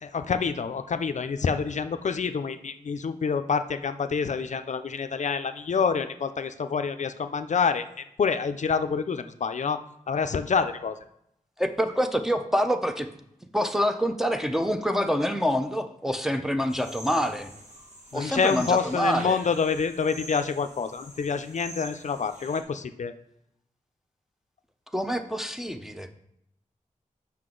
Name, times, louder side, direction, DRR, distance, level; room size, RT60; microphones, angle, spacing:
voice 1, 0.0-7.8 8.2-9.8 10.1-11.0 18.1-23.1, left 5 dB, 60° left, 9 dB, 0.4 m, -27 dB
voice 2, 11.6-13.1 13.5-17.5 18.1-19.4 24.9-26.1, equal, 5° right, 5 dB, 0.6 m, -26 dB
sound 1, 16.7-22.6, equal, 60° right, 1.8 m, -45 dB
7.7 x 5.8 x 3.8 m, 0.76 s
wide cardioid pair, 100°, 14 cm